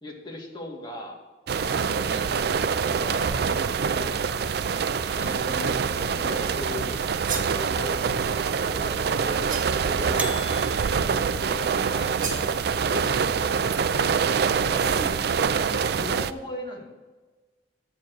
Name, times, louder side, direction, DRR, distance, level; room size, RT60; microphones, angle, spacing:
voice 1, 0.0-1.2 1.6-1.8 2.1-4.2 5.0-10.3 11.3-13.7 14.6-14.8 15.9-16.9, left 2 dB, 25° left, -2 dB, 2.2 m, -39 dB
sound 1, 1.5-16.3, right 6 dB, 65° right, 0.4 m, -25 dB
sound 2, 4.9-11.9, equal, 10° right, 0.5 m, -39 dB
sound 3, 7.0-7.6 9.5-9.9 12.2-12.5, right 6 dB, 50° right, 1.7 m, -34 dB
voice 2, 14.8-16.0, equal, 55° left, 6 dB, 1.1 m, -42 dB
9.2 x 7.2 x 6.2 m, 1.3 s
head